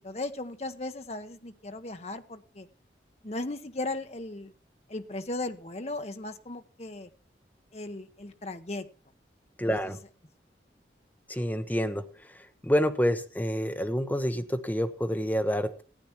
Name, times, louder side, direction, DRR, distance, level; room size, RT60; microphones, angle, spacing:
voice 1, 0.0-2.7 3.2-4.5 4.9-7.1 7.7-8.9 9.8-9.9, left 2 dB, 35° left, 8 dB, 0.9 m, -37 dB
voice 2, 9.6-10.0 11.3-12.4 12.6-15.8, equal, 10° left, 7 dB, 0.9 m, -28 dB
15.0 x 8.6 x 4.5 m, 0.38 s
head